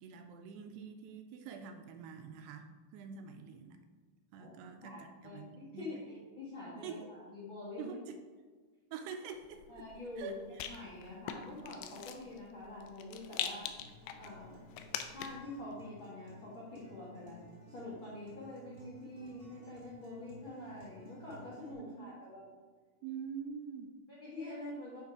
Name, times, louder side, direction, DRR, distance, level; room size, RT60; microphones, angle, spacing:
voice 1, 0.0-3.8 4.3-5.0 5.2-5.5 5.7-5.9 6.8-7.1 7.8-8.2 8.9-9.9 10.2-10.6 21.8-22.1 23.0-23.9, right 6 dB, 80° right, 6 dB, 2.6 m, -45 dB
voice 2, 4.8-7.9 9.7-10.3 10.6-13.7 14.2-14.6 15.1-22.4 24.1-25.0, left 2 dB, 75° left, -7 dB, 1.1 m, -46 dB
Rattle, 9.4-15.5, left 9 dB, 90° left, 2.7 m, -44 dB
Acoustic guitar, 13.7-21.7, equal, 50° right, 1.0 m, -56 dB
8.9 x 3.7 x 4.7 m, 1.4 s
omnidirectional pair, 4.8 m